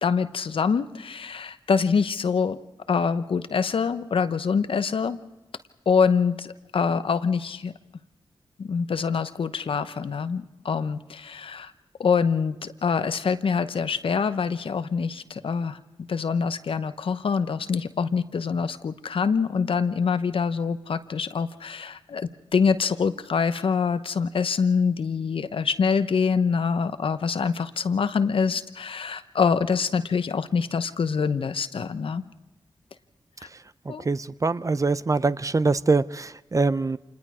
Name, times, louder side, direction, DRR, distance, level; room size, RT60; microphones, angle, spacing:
voice 1, 0.0-2.6 2.9-5.2 5.9-7.7 8.6-11.7 12.0-15.8 16.1-32.2 33.4-33.5 33.9-34.1, left 5 dB, 70° left, 12 dB, 0.9 m, -25 dB
voice 2, 33.9-37.0, right 3 dB, 35° right, 16 dB, 0.6 m, -24 dB
26.5 x 20.0 x 4.9 m, 1.0 s
cardioid pair, 45°, 9 cm